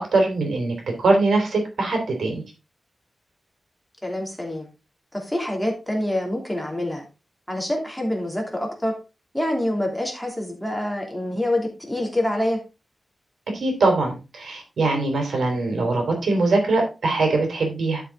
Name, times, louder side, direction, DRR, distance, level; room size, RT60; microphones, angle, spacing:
voice 1, 0.0-2.4 13.5-18.0, right 3 dB, 85° right, 3 dB, 3.6 m, -22 dB
voice 2, 4.0-4.7 5.1-7.0 7.5-8.9 9.3-12.6, left 1 dB, 5° left, 0 dB, 2.9 m, -26 dB
11.5 x 5.7 x 3.8 m, 0.29 s
wide cardioid pair, 115°, 0 cm